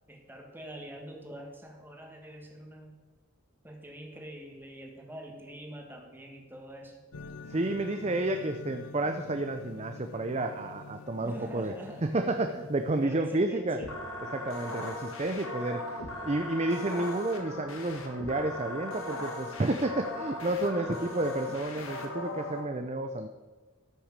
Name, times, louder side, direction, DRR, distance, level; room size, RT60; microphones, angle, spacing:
voice 1, 0.1-3.0 3.6-7.0 11.2-12.0 13.0-13.9 20.7-21.3, right 1 dB, 10° right, 1 dB, 1.6 m, -45 dB
sound 1, 7.1-13.1, left 3 dB, 85° left, 0.6 m, -46 dB
voice 2, 7.5-11.7 12.0-13.8 14.3-15.8 16.2-23.3, right 2 dB, 30° right, 7 dB, 0.5 m, -30 dB
sound 2, 13.8-22.6, left 1 dB, 60° left, 1.7 m, -39 dB
13.0 x 6.2 x 6.6 m, 1.3 s
head